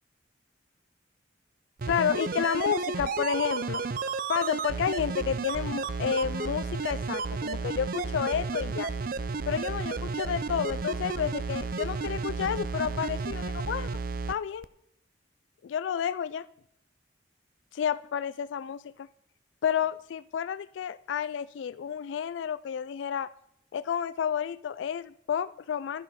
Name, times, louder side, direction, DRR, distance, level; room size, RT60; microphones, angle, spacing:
sound 1, 1.8-14.3 14.6-14.7, right 4 dB, 50° right, 0.5 m, -32 dB
voice 1, 1.9-3.8 4.3-8.9 9.5-13.9 14.3-14.7 15.6-16.4 17.7-19.1 19.6-23.3 23.7-26.0, left 8 dB, 80° left, 15 dB, 0.3 m, -30 dB
12.0 x 11.0 x 4.1 m, 0.77 s
head